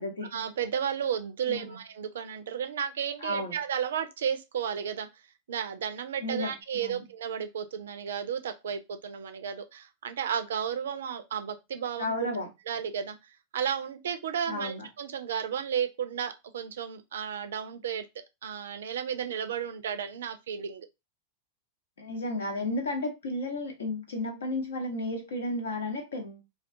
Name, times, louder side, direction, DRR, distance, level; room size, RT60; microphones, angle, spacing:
voice 1, 0.3-5.1 5.5-12.3 12.7-18.0 18.4-20.9, right 8 dB, 65° right, 0.3 m, -33 dB
voice 2, 1.5-1.8 3.2-3.6 6.2-7.0 12.0-12.5 14.5-14.9 22.0-26.4, left 1 dB, 70° left, 0.8 m, -33 dB
2.3 x 2.2 x 2.6 m
figure-of-eight pair, 90°, 0 cm